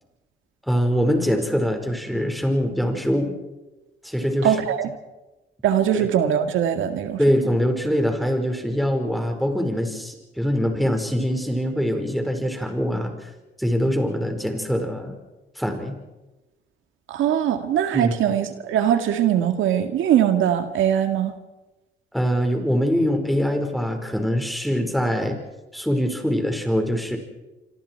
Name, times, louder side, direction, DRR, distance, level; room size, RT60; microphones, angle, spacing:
voice 1, 0.7-3.3 4.0-4.6 5.9-6.1 7.2-13.3 13.6-15.1 15.5-15.9 17.9-18.1 22.1-25.4 25.7-27.2, equal, ahead, 4 dB, 5.1 m, -23 dB
voice 2, 4.4-4.9 5.6-7.2 17.1-21.3, right 10 dB, 80° right, 7 dB, 2.0 m, -21 dB
26.5 x 26.0 x 4.7 m, 1.1 s
cardioid pair, 90°, 20 cm